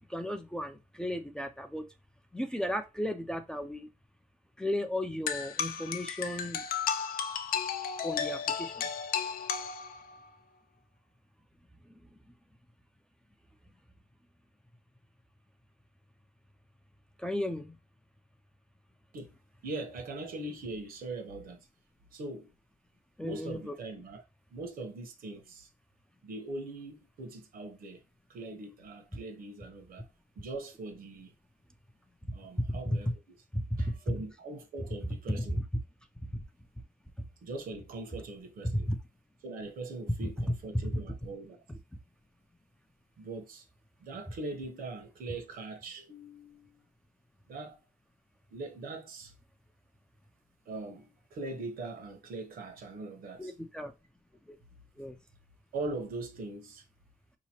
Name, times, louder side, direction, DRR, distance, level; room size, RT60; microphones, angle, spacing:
voice 1, 0.1-1.8 2.3-3.9 4.6-6.6 8.0-8.9 17.2-17.7 23.2-23.8 35.4-35.5 38.7-39.0 40.2-40.3 40.9-41.0 53.4-53.9 55.0-55.1, left 1 dB, 5° left, 0.4 m, -35 dB
sound 1, 5.3-10.3, left 7 dB, 80° left, 0.5 m, -34 dB
voice 2, 19.6-21.7 22.1-22.5 23.2-24.2 24.5-25.7 26.2-28.0 28.3-30.1 30.4-31.3 32.3-33.1 33.8-35.6 37.4-38.9 39.4-41.6 43.2-43.7 44.0-46.8 47.5-47.8 48.5-49.3 50.7-53.5 55.7-56.8, right 2 dB, 75° right, 1.0 m, -41 dB
4.8 x 2.9 x 2.9 m
wide cardioid pair, 140°, 15 cm